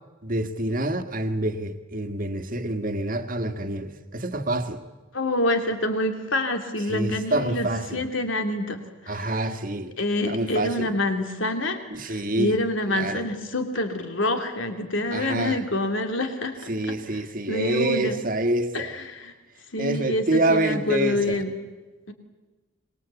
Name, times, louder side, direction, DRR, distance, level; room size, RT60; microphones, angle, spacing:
voice 1, 0.2-4.8 6.9-8.0 9.1-9.9 10.3-10.9 11.9-12.6 12.9-13.2 15.1-15.6 16.7-18.9 19.8-21.4, right 2 dB, 40° right, 8 dB, 1.7 m, -27 dB
voice 2, 5.1-8.8 9.0-9.4 10.0-16.6 16.9-17.2 17.5-18.2 18.7-19.3 19.7-21.5 22.1-22.2, left 1 dB, 65° left, 6 dB, 2.9 m, -27 dB
25.5 x 22.0 x 8.3 m, 1.3 s
head